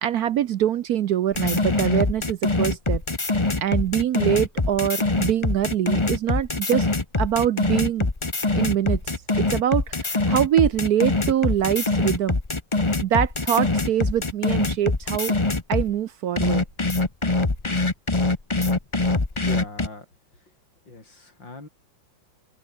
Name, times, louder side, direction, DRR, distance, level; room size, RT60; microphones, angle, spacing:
voice 1, 0.0-3.0 3.6-6.9 7.2-8.1 8.5-12.4 13.0-15.3 15.7-16.6, right 11 dB, 65° right, 1.1 m, -24 dB
sound 1, 1.3-15.9 16.4-19.9, left 3 dB, 20° left, 1.3 m, -23 dB
voice 2, 19.4-20.1 20.9-21.7, left 2 dB, 75° left, 7.3 m, -38 dB
open air
omnidirectional pair, 2.0 m